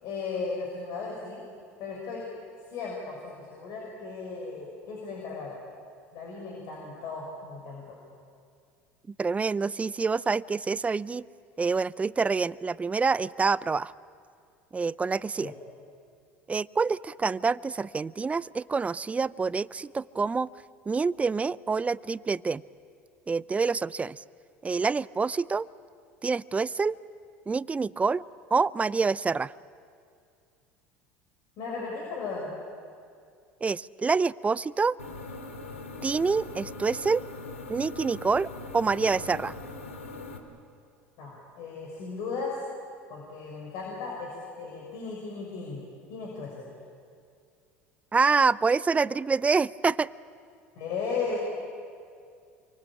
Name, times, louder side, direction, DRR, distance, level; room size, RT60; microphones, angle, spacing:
voice 1, 0.0-1.4 1.8-2.2 2.7-5.6 6.1-8.0 15.4-15.5 31.6-32.5 41.2-42.6 43.1-45.8 46.1-46.7 50.8-51.4, left 4 dB, 55° left, -2 dB, 6.2 m, -36 dB
voice 2, 9.2-11.2 11.6-13.9 14.7-15.5 16.5-20.5 20.9-22.6 23.3-24.2 24.6-25.7 26.2-26.9 27.5-28.2 28.5-29.5 33.6-35.0 36.0-37.2 37.7-38.5 38.7-39.6 48.1-50.1, right 4 dB, 20° right, 20 dB, 0.6 m, -26 dB
sound 1, 35.0-40.4, left 3 dB, 90° left, 2.4 m, -41 dB
27.5 x 24.5 x 8.8 m, 2.3 s
hypercardioid pair, 70°, 7 cm